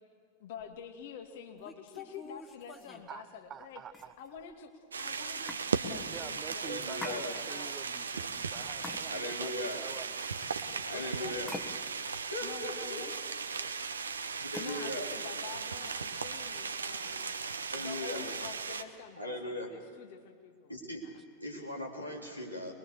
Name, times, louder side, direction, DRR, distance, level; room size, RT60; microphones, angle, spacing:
voice 1, 0.4-3.8 4.2-7.7 10.7-11.4 12.4-13.2 14.6-17.4 17.8-20.8 21.1-21.2, left 7 dB, 50° left, 5 dB, 2.3 m, -47 dB
sound 1, 0.6-0.8 1.5-3.1 3.9-4.5 5.5-5.7 6.9-7.7 8.8-9.4 9.8-10.9 11.5-12.0 12.4-13.7 14.5-14.8 15.8-16.2, left 2 dB, 15° left, 1.7 m, -47 dB
voice 2, 3.1-4.1 6.0-10.3 10.7-10.8, right 8 dB, 25° right, 12 dB, 0.9 m, -47 dB
sound 2, 4.9-18.8, right 5 dB, 75° right, 1.1 m, -37 dB
voice 3, 6.7-7.4 9.1-9.8 10.8-11.5 12.3-13.0 14.5-15.1 17.7-18.3 19.2-19.7 20.7-21.0 21.4-22.7, left 1 dB, 90° left, -2 dB, 3.6 m, -38 dB
23.5 x 22.0 x 6.8 m, 2.1 s
figure-of-eight pair, 90°, 0 cm